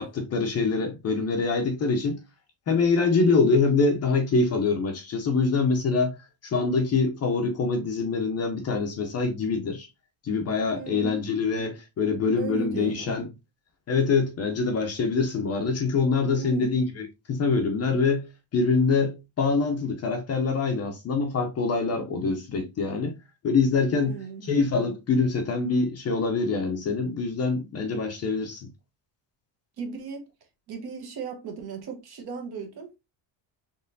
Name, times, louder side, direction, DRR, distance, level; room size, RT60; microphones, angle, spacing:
voice 1, 0.0-2.2 2.7-6.2 6.4-9.9 10.2-13.3 13.9-18.3 18.5-23.1 23.4-24.2 24.4-28.7, left 4 dB, 35° left, 0.5 m, -25 dB
voice 2, 10.7-11.3 12.4-13.2 16.3-16.8 23.9-24.5 29.8-30.2 30.7-32.9, right 5 dB, 55° right, 1.1 m, -37 dB
4.2 x 3.0 x 2.5 m
cardioid pair, 155°, 47 cm